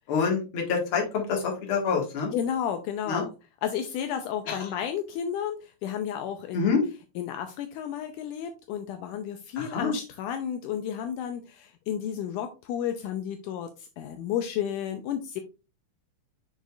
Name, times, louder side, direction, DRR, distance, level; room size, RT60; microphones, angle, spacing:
voice 1, 0.1-2.3 3.1-3.3 4.5-4.7 6.5-6.8 9.6-9.9, left 5 dB, 50° left, 1 dB, 2.0 m, -27 dB
voice 2, 2.3-3.3 3.6-5.6 5.8-6.7 7.2-15.4, left 9 dB, 80° left, 7 dB, 1.9 m, -32 dB
6.5 x 6.4 x 2.4 m, 0.30 s
omnidirectional pair, 4.1 m